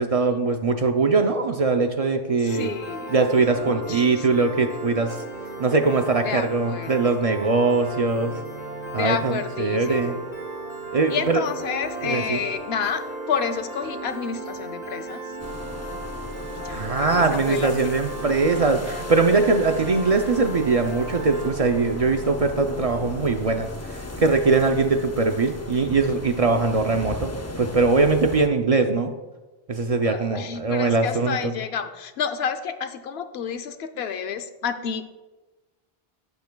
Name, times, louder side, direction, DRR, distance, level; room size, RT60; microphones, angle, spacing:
voice 1, 0.0-2.7 3.1-5.2 5.6-8.4 8.9-10.2 10.9-11.4 12.0-12.4 16.7-27.3 27.6-29.1 29.7-31.5, right 3 dB, 50° right, 6 dB, 0.5 m, -21 dB
voice 2, 2.4-3.2 3.7-4.3 6.2-7.0 9.0-10.2 11.1-15.2 16.5-17.9 30.0-35.0, left 7 dB, 85° left, 10 dB, 0.9 m, -30 dB
Piano, 2.5-21.5, right 2 dB, 65° left, 2.2 m, -36 dB
sound 1, 15.4-28.5, left 2 dB, 20° left, 0.4 m, -36 dB
11.5 x 8.1 x 2.2 m, 1.2 s
omnidirectional pair, 1.0 m